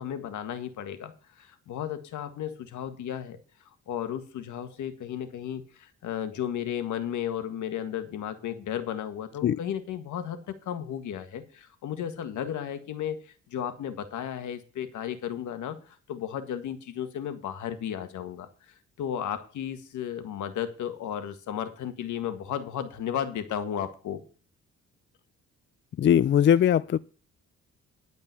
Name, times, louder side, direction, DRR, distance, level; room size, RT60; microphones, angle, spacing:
voice 1, 0.0-3.4 3.9-24.2, left 9 dB, 75° left, 1.7 m, -34 dB
voice 2, 26.0-27.0, left 9 dB, 40° left, 0.4 m, -20 dB
11.0 x 5.3 x 8.2 m
cardioid pair, 90°, 30 cm